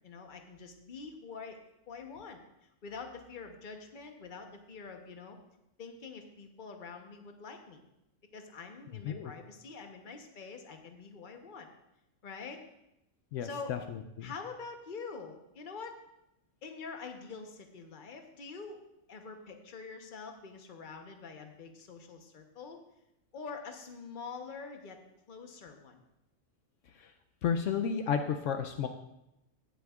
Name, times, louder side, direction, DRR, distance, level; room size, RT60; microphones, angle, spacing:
voice 1, 0.0-1.6 1.9-2.4 2.8-5.4 5.8-7.8 8.3-11.7 12.2-12.6 13.4-13.7 14.2-16.0 16.6-18.8 19.1-22.8 23.3-25.0 25.3-26.0, left 5 dB, 40° left, 5 dB, 1.0 m, -45 dB
voice 2, 13.3-13.8 14.2-14.3 27.4-28.9, left 7 dB, 75° left, 6 dB, 0.9 m, -32 dB
17.0 x 7.9 x 2.4 m, 0.86 s
omnidirectional pair, 1.3 m